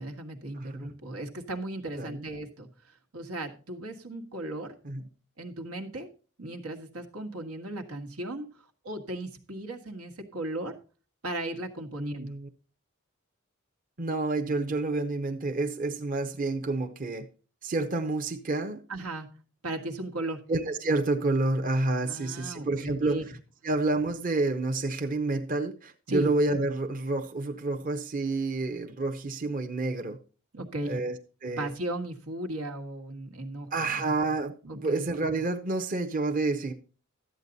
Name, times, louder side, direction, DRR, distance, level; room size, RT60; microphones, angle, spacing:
voice 1, 0.0-2.7 3.1-4.7 5.4-6.1 6.4-8.5 8.8-10.8 11.2-12.3 18.9-19.3 19.6-20.4 22.0-23.2 26.1-26.3 30.5-31.0 31.6-34.0 34.6-35.1, right 1 dB, 90° right, 1.7 m, -36 dB
voice 2, 0.6-0.9 2.0-2.3 4.8-5.1 12.0-12.5 14.0-17.3 17.6-18.8 20.5-23.2 23.6-30.2 30.8-31.2 31.4-31.7 33.7-36.7, right 2 dB, 40° right, 0.8 m, -29 dB
12.5 x 8.4 x 4.1 m
head